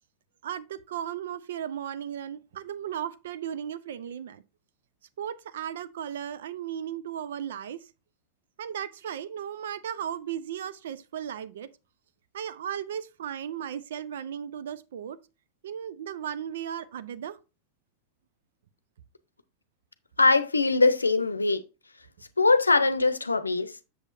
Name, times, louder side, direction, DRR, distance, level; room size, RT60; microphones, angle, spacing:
voice 1, 0.4-4.4 5.2-7.9 8.6-11.7 12.3-15.2 15.6-17.4, right 9 dB, 60° right, 0.6 m, -36 dB
voice 2, 20.2-21.6 22.4-23.8, left 3 dB, 80° left, 0.7 m, -22 dB
8.0 x 7.0 x 2.6 m
figure-of-eight pair, 90°, 0 cm